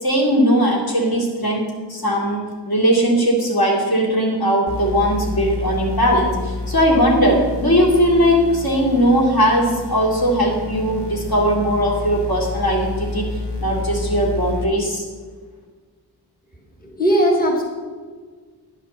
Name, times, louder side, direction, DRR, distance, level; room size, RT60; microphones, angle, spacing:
voice 1, 0.0-13.3 13.6-15.0, equal, 60° left, -1 dB, 2.7 m, -19 dB
sound 1, 4.7-14.6, left 3 dB, 80° left, 1.5 m, -29 dB
voice 2, 16.8-17.6, equal, 20° left, 0 dB, 1.5 m, -18 dB
10.5 x 6.0 x 7.3 m, 1.5 s
wide cardioid pair, 170°, 40 cm